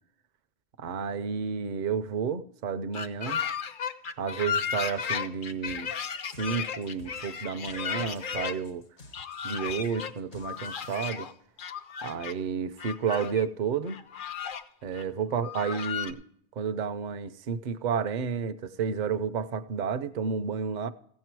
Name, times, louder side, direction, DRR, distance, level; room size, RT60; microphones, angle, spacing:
voice 1, 0.8-3.4 4.2-5.9 6.4-8.8 9.4-11.3 12.0-14.0 14.8-16.2 16.6-20.9, right 6 dB, 50° right, 0.6 m, -31 dB
sound 1, 2.9-8.6 9.1-10.1 10.4-11.3 11.6-12.3 12.8-13.4 13.9-14.6 14.9-15.0 15.4-16.1, left 7 dB, 55° left, 0.7 m, -34 dB
sound 2, 5.7-11.0, left 2 dB, 70° left, 1.5 m, -52 dB
15.0 x 7.5 x 4.6 m
omnidirectional pair, 1.1 m